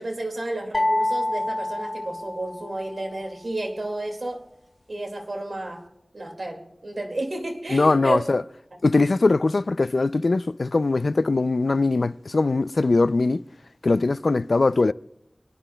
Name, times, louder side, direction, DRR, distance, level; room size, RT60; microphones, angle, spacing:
voice 1, 0.0-4.5 4.9-5.9 6.1-8.2, right 1 dB, 75° right, 2.1 m, -31 dB
sound 1, 0.7-2.9, left 1 dB, 40° left, 0.8 m, -26 dB
voice 2, 7.7-8.4 8.8-13.4 13.8-14.9, left 3 dB, 80° left, 0.3 m, -21 dB
25.5 x 11.0 x 2.2 m
wide cardioid pair, 55°, 0 cm